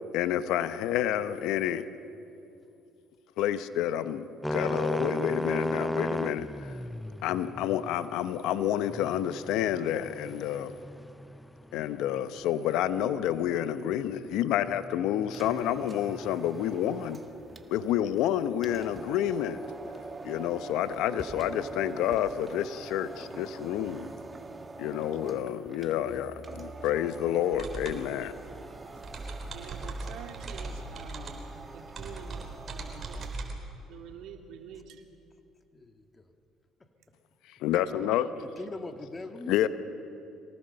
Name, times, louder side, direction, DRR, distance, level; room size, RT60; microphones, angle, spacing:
voice 1, 0.1-1.9 3.4-6.8 7.2-10.8 11.7-17.2 17.7-19.6 20.2-24.1 24.8-28.4 37.5-38.3 39.5-39.7, left 11 dB, 75° left, 13 dB, 0.8 m, -29 dB
sound 1, 4.4-17.1, left 1 dB, 5° left, 0.5 m, -36 dB
sound 2, 15.2-33.5, right 3 dB, 25° right, 1.5 m, -45 dB
sound 3, 27.5-33.6, right 3 dB, 45° right, 3.9 m, -40 dB
voice 2, 29.5-31.5 31.7-33.3 33.9-35.0, right 7 dB, 70° right, 4 dB, 2.3 m, -47 dB
voice 3, 35.7-36.3 36.8-36.9 38.6-39.7, left 2 dB, 25° left, 6 dB, 1.8 m, -42 dB
24.0 x 18.5 x 6.7 m, 2.7 s
supercardioid pair, 70°, 0 cm